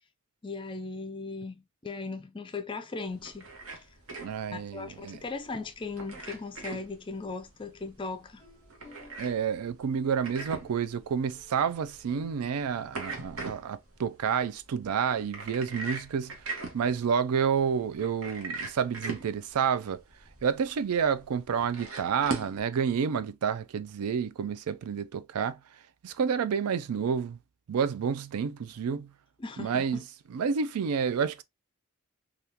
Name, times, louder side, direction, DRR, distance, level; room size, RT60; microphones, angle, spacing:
voice 1, 0.4-3.5 4.5-8.4 29.4-30.0, left 3 dB, 20° left, 0.3 m, -38 dB
sound 1, 3.1-22.6, right 3 dB, 70° right, 1.0 m, -42 dB
voice 2, 4.2-5.2 9.2-16.3 16.7-20.0 20.4-25.6 26.0-27.4 27.7-29.1 29.6-30.0 30.3-31.4, right 7 dB, 85° right, 0.4 m, -29 dB
sound 2, 8.2-13.5, left 3 dB, 25° right, 1.5 m, -58 dB
3.5 x 2.4 x 2.7 m
head